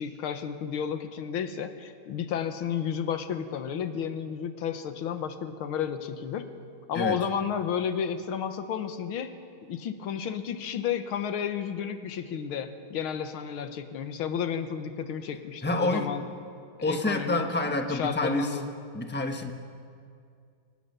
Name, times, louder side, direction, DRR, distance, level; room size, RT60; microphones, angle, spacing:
voice 1, 0.0-6.4 6.9-9.3 9.7-16.3 16.8-17.4 17.9-18.7, left 8 dB, 85° left, 9 dB, 2.0 m, -32 dB
voice 2, 15.6-16.1 16.8-18.6 18.9-19.5, left 2 dB, 5° left, 4 dB, 1.0 m, -28 dB
24.0 x 19.5 x 6.9 m, 2.3 s
omnidirectional pair, 2.2 m